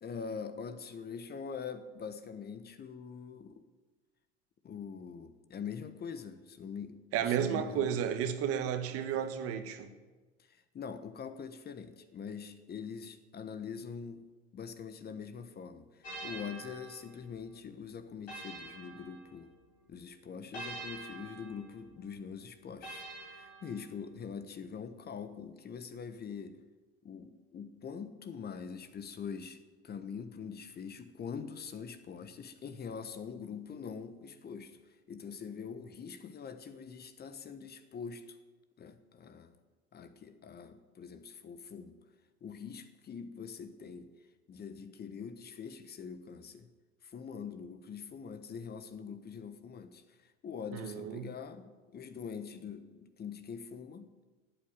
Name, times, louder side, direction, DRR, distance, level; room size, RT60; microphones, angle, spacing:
voice 1, 0.0-3.6 4.6-7.9 10.4-14.2 14.5-19.5 19.9-26.6 27.0-29.6 29.8-34.8 35.1-38.4 38.8-39.5 39.9-42.0 42.4-44.1 44.5-46.7 47.0-54.1, left 6 dB, 30° left, 1.3 m, -44 dB
voice 2, 7.1-9.9 50.7-51.3, right 8 dB, 45° right, 1.5 m, -32 dB
sound 1, 16.0-19.8 20.5-24.2, right 2 dB, 80° left, 5.3 m, -47 dB
14.5 x 8.6 x 9.2 m
figure-of-eight pair, 70°, 32 cm